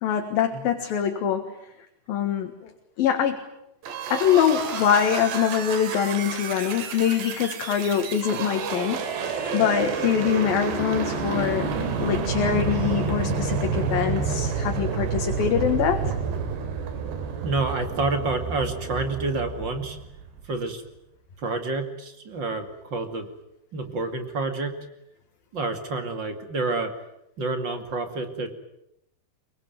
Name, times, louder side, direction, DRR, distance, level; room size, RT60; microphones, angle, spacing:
voice 1, 0.0-1.5 2.1-2.7 3.0-3.4 4.1-11.7 12.0-16.0, left 9 dB, 65° left, 5 dB, 3.2 m, -24 dB
sound 1, 3.8-20.5, right 5 dB, 80° right, 4.7 m, -29 dB
voice 2, 17.4-20.0 20.4-20.8 21.4-23.3 23.7-24.8 25.5-26.9 27.4-28.5, right 3 dB, 35° right, 7 dB, 2.3 m, -28 dB
25.0 x 23.0 x 9.3 m, 0.79 s
omnidirectional pair, 4.9 m